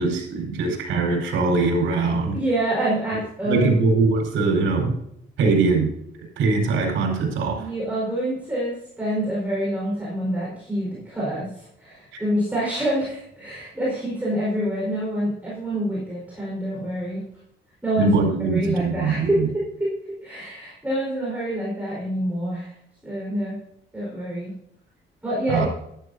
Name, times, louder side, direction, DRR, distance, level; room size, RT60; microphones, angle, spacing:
voice 1, 0.0-2.4 3.4-5.0 5.4-5.9 6.4-7.7 12.1-12.2 18.0-19.5 25.5-25.7, right 4 dB, 85° right, 1 dB, 4.9 m, -22 dB
voice 2, 2.3-3.7 7.5-17.2 17.8-18.2 18.5-19.9 20.2-22.7 23.0-23.6 23.9-24.5 25.2-25.7, right 1 dB, 5° right, -7 dB, 4.6 m, -26 dB
14.0 x 12.0 x 2.7 m, 0.75 s
cardioid pair, 160°, 20 cm